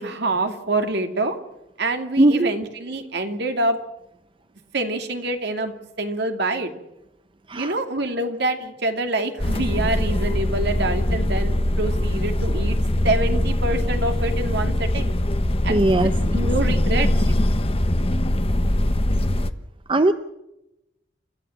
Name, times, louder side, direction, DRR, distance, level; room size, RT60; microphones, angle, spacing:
voice 1, 0.0-1.4 1.8-3.8 4.7-6.7 7.6-12.8 13.0-15.1 15.6-17.1, right 2 dB, 65° right, 5 dB, 2.5 m, -26 dB
voice 2, 2.2-2.5 7.5-7.8 15.7-16.1 19.9-20.1, right 1 dB, 30° right, 10 dB, 0.7 m, -18 dB
sound 1, 9.4-19.5, left 1 dB, 30° left, 1.0 m, -22 dB
29.5 x 13.5 x 7.3 m, 0.90 s
head